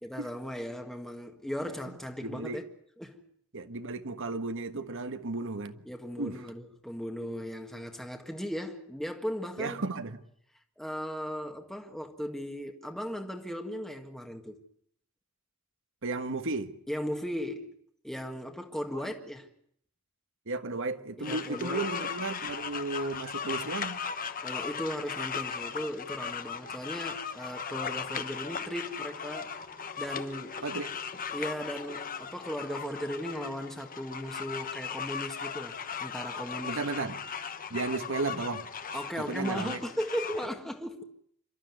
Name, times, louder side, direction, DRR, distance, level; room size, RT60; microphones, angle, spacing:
voice 1, 0.0-2.6 3.0-3.2 5.9-9.8 10.8-14.6 16.9-17.7 18.0-19.5 21.2-21.8 24.4-29.5 30.0-30.6 31.3-36.9 38.9-41.0, equal, ahead, 1.7 m, -37 dB
voice 2, 2.2-2.6 3.5-5.8 6.2-6.4 9.6-10.2 16.0-16.7 18.9-19.1 20.5-24.0 30.6-30.9 36.6-37.2 37.7-38.7 39.2-39.8, right 3 dB, 60° right, 1.5 m, -34 dB
sound 1, 21.2-40.5, left 6 dB, 40° left, 1.2 m, -38 dB
27.5 x 13.0 x 9.5 m
head